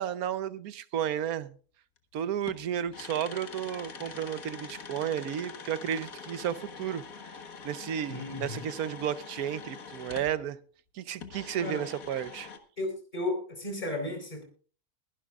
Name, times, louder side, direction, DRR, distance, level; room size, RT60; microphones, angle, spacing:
voice 1, 0.0-1.5 2.1-7.0 7.6-10.6 10.9-12.5, right 9 dB, 80° right, 1.3 m, -33 dB
sound 1, 2.0-2.1 2.5-10.4 11.2-12.6, left 5 dB, 70° left, 1.9 m, -44 dB
voice 2, 8.1-8.6 11.6-11.9 12.8-14.4, left 2 dB, 30° left, 4.1 m, -34 dB
23.0 x 11.0 x 2.4 m
omnidirectional pair, 1.5 m